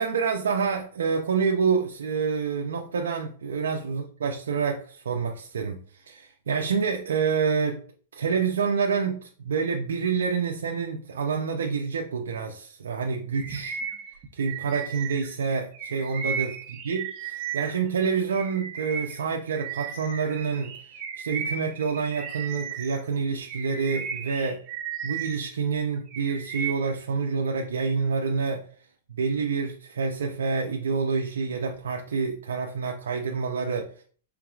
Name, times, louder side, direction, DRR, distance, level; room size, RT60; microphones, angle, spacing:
voice 1, 0.0-5.8 6.1-7.8 8.1-13.8 14.3-16.5 16.8-20.7 21.2-24.6 25.0-28.6 29.2-33.9, right 5 dB, 90° right, 0.6 m, -27 dB
Bird vocalization bird call bird song, 13.4-17.9 18.3-23.0 23.4-25.5 25.9-26.9, right 7 dB, 40° right, 1.1 m, -35 dB
4.7 x 3.8 x 2.4 m
hypercardioid pair, 140°, 0 cm